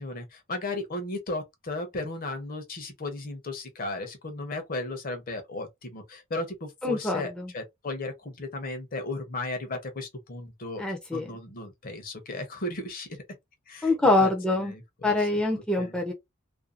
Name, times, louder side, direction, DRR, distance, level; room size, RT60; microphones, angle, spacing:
voice 1, 0.0-10.8 11.1-13.2 13.7-13.9 14.2-14.3 14.6-15.1 15.8-15.9, left 2 dB, 45° left, 0.7 m, -35 dB
voice 2, 6.8-7.5 10.8-11.3 13.8-14.7 15.0-16.1, left 2 dB, 5° left, 0.5 m, -25 dB
2.5 x 2.3 x 2.4 m
head